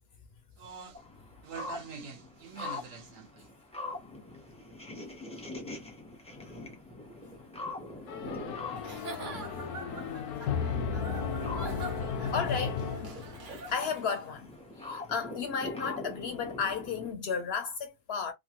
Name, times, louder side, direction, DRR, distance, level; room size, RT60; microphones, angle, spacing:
voice 1, 0.6-1.0 1.4-3.5, right 6 dB, 65° right, 1.2 m, -44 dB
sound 1, 0.9-17.1, left 2 dB, 5° left, 0.5 m, -43 dB
sound 2, 8.1-13.6, left 6 dB, 85° left, 1.1 m, -34 dB
Giggle / Chuckle chortle, 8.8-14.3, right 2 dB, 50° right, 0.7 m, -44 dB
voice 2, 12.3-13.2 13.7-14.5 14.8-18.3, left 6 dB, 65° left, 0.6 m, -33 dB
3.0 x 2.2 x 2.8 m
omnidirectional pair, 1.5 m